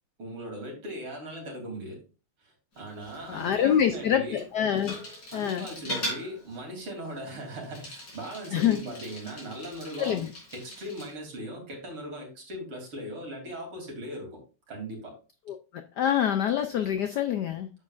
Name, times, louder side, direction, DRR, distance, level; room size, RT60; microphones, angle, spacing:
voice 1, 0.2-2.0 2.4-4.4 5.3-10.2 10.5-14.4 14.7-15.1, right 1 dB, 75° right, -1 dB, 4.0 m, -39 dB
Bicycle, 2.7-11.1, equal, 45° left, 4.3 m, -41 dB
voice 2, 3.3-4.9 5.3-5.7 8.5-8.8 10.0-10.3 15.5-15.6 16.0-17.7, left 9 dB, 80° left, 8 dB, 0.9 m, -25 dB
9.5 x 7.4 x 2.5 m, 0.34 s
omnidirectional pair, 2.4 m